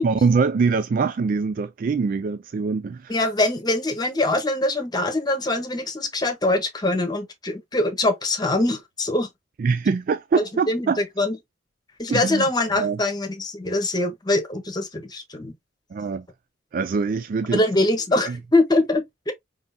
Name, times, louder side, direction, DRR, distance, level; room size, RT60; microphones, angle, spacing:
voice 1, 0.0-3.1 9.6-11.0 12.1-12.5 12.7-13.0 15.9-16.3 16.7-17.6 18.2-18.4, right 4 dB, 50° right, 0.3 m, -23 dB
voice 2, 3.1-9.3 10.3-11.4 12.0-15.5 17.5-19.3, left 2 dB, 20° left, 0.9 m, -23 dB
5.0 x 3.7 x 2.6 m
head